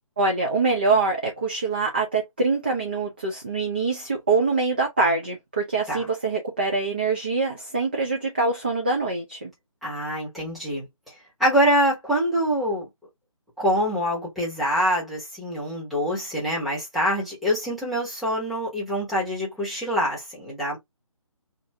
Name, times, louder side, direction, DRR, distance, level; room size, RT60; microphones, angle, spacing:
voice 1, 0.2-9.5, right 3 dB, 20° right, 0.3 m, -24 dB
voice 2, 9.8-10.9 11.4-12.9 13.6-20.8, equal, ahead, 0.8 m, -25 dB
2.6 x 2.5 x 3.2 m
figure-of-eight pair, 150°, 18 cm